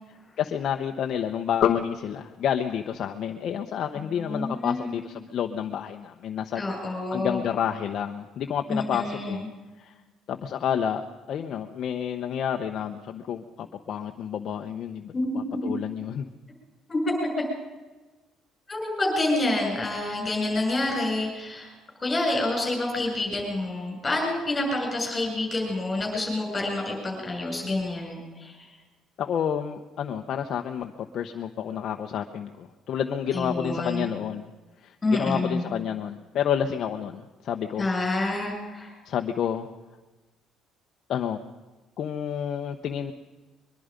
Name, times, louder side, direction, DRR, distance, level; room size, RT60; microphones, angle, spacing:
voice 1, 0.4-6.7 7.1-9.4 9.8-10.0 10.3-11.0 11.3-16.3 29.2-34.5 34.8-37.9 39.0-39.7 41.1-41.4 42.0-43.1, left 8 dB, 45° left, 4 dB, 1.0 m, -29 dB
voice 2, 4.0-4.9 6.6-7.4 8.7-9.5 15.1-15.3 16.9-17.1 18.7-21.7 22.0-28.6 33.3-34.1 35.0-35.7 37.8-38.9, left 2 dB, 15° left, 1 dB, 7.0 m, -28 dB
23.0 x 22.5 x 5.3 m, 1.2 s
cardioid pair, 180°, 0 cm